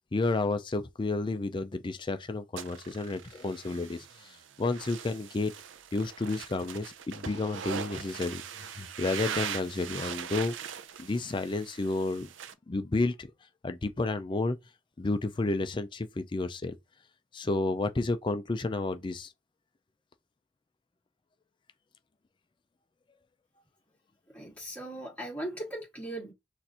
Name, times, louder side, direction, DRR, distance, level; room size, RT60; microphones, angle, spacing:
voice 1, 0.1-5.5 5.9-10.5 11.0-12.3 12.7-13.3 13.6-14.6 15.0-16.7 17.3-19.3, left 2 dB, 25° left, 0.4 m, -31 dB
sound 1, 2.6-12.5, right 8 dB, 65° right, 0.5 m, -41 dB
voice 2, 24.3-26.3, right 1 dB, 5° left, 1.7 m, -38 dB
6.1 x 2.5 x 2.8 m
head